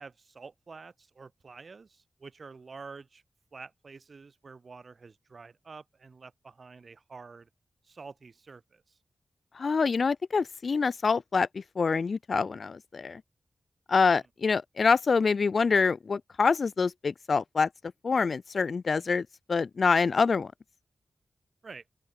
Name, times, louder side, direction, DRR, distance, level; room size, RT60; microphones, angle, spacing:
voice 1, 0.0-3.2 3.5-7.5 7.8-9.0 21.6-21.8, right 4 dB, 55° right, 3.3 m, -48 dB
voice 2, 9.6-13.2 13.9-17.7 18.0-20.5, left 5 dB, 60° left, 0.4 m, -26 dB
open air
wide cardioid pair, 120°, 0 cm